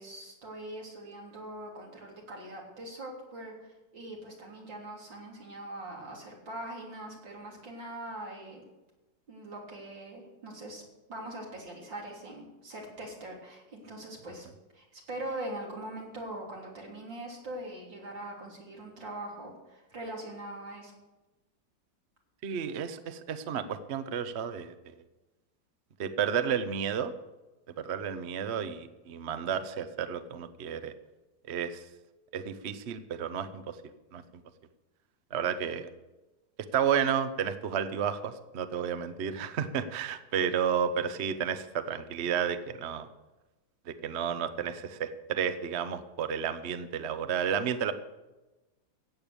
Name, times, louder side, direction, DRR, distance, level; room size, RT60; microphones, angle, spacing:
voice 1, 0.0-8.6 9.3-10.8 11.1-14.5 14.7-20.9, right 1 dB, 80° right, -1 dB, 4.1 m, -42 dB
voice 2, 22.4-24.9 26.0-27.1 27.8-30.9 31.5-31.8 32.3-33.8 34.1-34.2 35.3-35.9 36.7-43.1 43.9-47.9, right 8 dB, 50° right, 11 dB, 0.9 m, -31 dB
15.0 x 8.7 x 7.0 m, 1.1 s
omnidirectional pair, 2.0 m